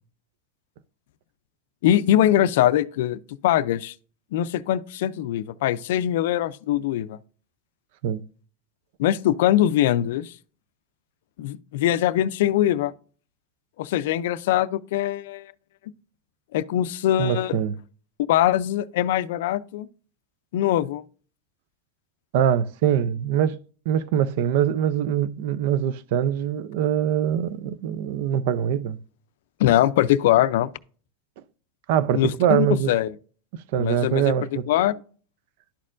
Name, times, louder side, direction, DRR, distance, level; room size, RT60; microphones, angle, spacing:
voice 1, 1.8-3.9 4.3-7.2 9.0-10.3 11.4-12.9 13.8-15.5 16.5-17.6 18.3-19.9 20.5-21.0 29.6-30.7 32.1-33.1 33.8-34.3 34.7-34.9, left 12 dB, 75° left, 0.4 m, -22 dB
voice 2, 17.2-17.7 22.3-23.6 23.9-29.0 31.9-32.9 33.5-34.7, right 9 dB, 65° right, 0.4 m, -23 dB
11.5 x 4.3 x 2.5 m
supercardioid pair, 130°, 0 cm